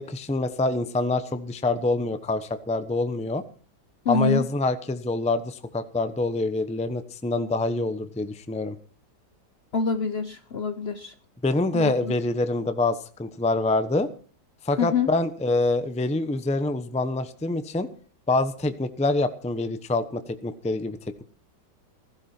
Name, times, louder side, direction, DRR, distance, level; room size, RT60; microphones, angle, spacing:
voice 1, 0.0-3.4 4.1-8.8 11.4-14.1 14.6-17.9 18.3-21.2, left 2 dB, 5° left, 10 dB, 0.6 m, -26 dB
voice 2, 4.0-4.5 9.7-11.1 11.7-12.1 14.8-15.1, left 5 dB, 50° left, 10 dB, 0.9 m, -26 dB
16.0 x 15.5 x 4.4 m, 0.42 s
omnidirectional pair, 1.9 m